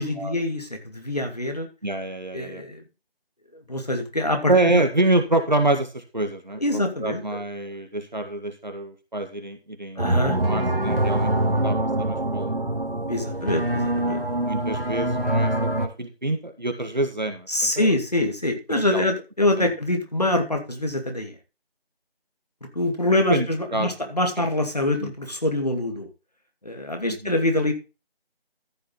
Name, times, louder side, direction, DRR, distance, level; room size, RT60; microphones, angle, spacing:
voice 1, 0.0-1.7 2.3-2.8 3.5-4.8 6.6-7.4 10.0-10.4 13.1-14.5 17.5-21.3 22.7-26.1 26.6-27.7, left 1 dB, 40° left, 4 dB, 2.6 m, -25 dB
voice 2, 1.8-2.6 4.5-11.3 11.6-12.6 14.5-17.9 18.7-19.0 19.6-19.7 23.3-23.5 23.7-23.9 24.4-24.5 25.0-25.1 27.2-27.4, right 2 dB, 45° right, 7 dB, 1.9 m, -26 dB
sound 1, 10.0-15.9, right 1 dB, 65° right, 2.4 m, -24 dB
14.0 x 6.6 x 4.1 m, 0.29 s
figure-of-eight pair, 180°, 31 cm